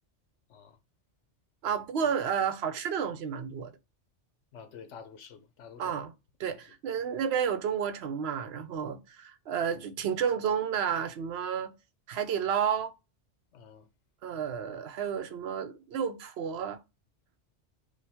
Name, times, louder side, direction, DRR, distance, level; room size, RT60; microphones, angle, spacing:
voice 1, 1.6-3.7 5.8-6.1 6.4-11.7 12.1-12.9 14.2-16.8, right 7 dB, 65° right, 0.9 m, -31 dB
voice 2, 4.5-6.1 6.4-6.6 13.5-13.9, left 6 dB, 85° left, 1.0 m, -49 dB
5.4 x 2.3 x 3.4 m
omnidirectional pair, 1.2 m